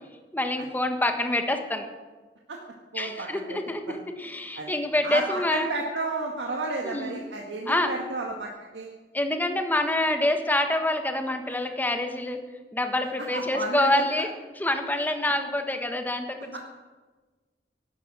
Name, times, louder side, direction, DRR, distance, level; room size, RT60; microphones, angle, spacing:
voice 1, 0.3-1.9 2.9-5.7 6.8-7.2 7.7-7.9 9.1-12.4 12.7-14.3 14.6-16.6, left 1 dB, 10° left, 5 dB, 1.4 m, -26 dB
voice 2, 2.9-3.6 4.6-4.7 5.0-8.9 13.2-14.0 16.5-16.6, right 2 dB, 90° right, 0 dB, 1.7 m, -32 dB
16.0 x 12.5 x 6.2 m, 1.3 s
head